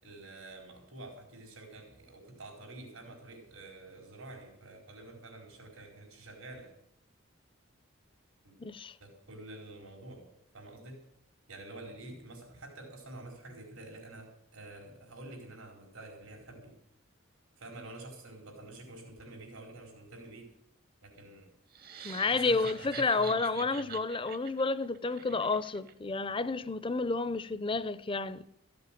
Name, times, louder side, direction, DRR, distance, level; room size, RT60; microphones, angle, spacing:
voice 1, 0.0-6.8 8.4-8.6 9.0-10.3 10.5-11.0 11.5-16.7 17.6-20.5 21.0-21.5 21.9-24.0, right 2 dB, 90° right, 4.6 m, -48 dB
voice 2, 8.6-9.0 22.0-28.5, left 3 dB, 25° left, 0.5 m, -30 dB
sound 1, 21.7-25.9, right 7 dB, 45° right, 0.9 m, -47 dB
15.0 x 7.8 x 9.1 m
head